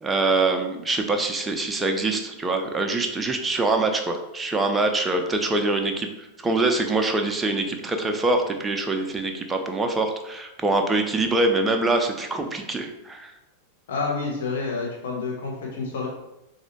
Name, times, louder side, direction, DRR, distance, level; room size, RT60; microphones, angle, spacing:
voice 1, 0.0-13.3, right 2 dB, 15° right, 4 dB, 0.5 m, -24 dB
voice 2, 13.9-16.1, left 4 dB, 60° left, -1 dB, 0.8 m, -28 dB
3.9 x 2.5 x 3.0 m, 0.92 s
figure-of-eight pair, 90°, 0 cm